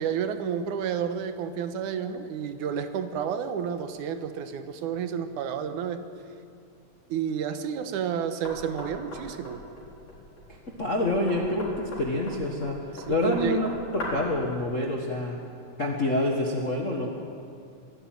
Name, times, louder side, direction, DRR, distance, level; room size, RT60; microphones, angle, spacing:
voice 1, 0.0-6.1 7.1-9.7 12.9-13.6, right 8 dB, 80° right, 9 dB, 2.5 m, -30 dB
Knock, 8.4-14.4, left 1 dB, 55° left, 5.5 m, -40 dB
voice 2, 10.5-12.8 13.1-13.7 13.9-15.4 15.8-17.1, left 1 dB, 35° left, -1 dB, 1.4 m, -27 dB
25.0 x 12.0 x 9.1 m, 2.4 s
omnidirectional pair, 3.6 m